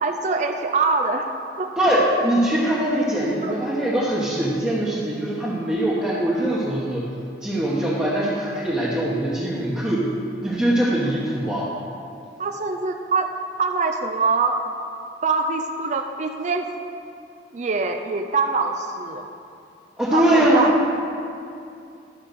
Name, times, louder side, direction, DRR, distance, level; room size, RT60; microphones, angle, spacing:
voice 1, 0.0-1.3 1.6-1.7 3.4-3.6 12.4-13.3 13.6-14.6 15.2-16.7 17.5-19.3 20.1-20.7, right 4 dB, 45° right, 4 dB, 0.5 m, -24 dB
voice 2, 1.8-7.0 7.4-10.1 10.4-11.7 20.0-20.7, right 1 dB, 5° right, -8 dB, 1.1 m, -22 dB
12.0 x 5.2 x 6.6 m, 2.5 s
head